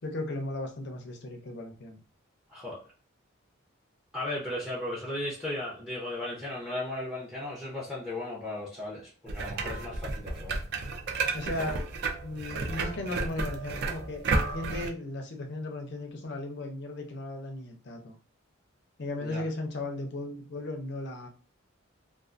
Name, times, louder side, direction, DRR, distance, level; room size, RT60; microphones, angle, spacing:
voice 1, 0.0-2.0 11.3-11.8 12.2-18.2 19.0-21.3, left 2 dB, 55° left, 4 dB, 0.5 m, -36 dB
voice 2, 4.1-10.6 19.2-19.4, left 1 dB, 5° right, -5 dB, 0.6 m, -36 dB
sound 1, 9.3-14.9, right 3 dB, 50° right, 0.3 m, -32 dB
2.4 x 2.4 x 2.4 m, 0.39 s
head